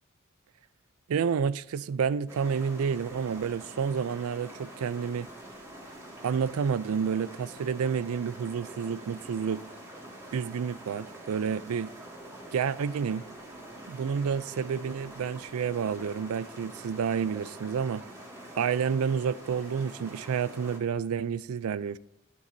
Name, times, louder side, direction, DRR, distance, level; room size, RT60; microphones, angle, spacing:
voice 1, 1.1-5.3 6.2-9.6 10.3-11.9 12.5-13.2 13.9-18.0 18.6-22.0, right 6 dB, 80° right, 0.4 m, -29 dB
sound 1, 2.3-20.8, right 1 dB, 15° right, 2.0 m, -46 dB
11.5 x 11.5 x 2.7 m
head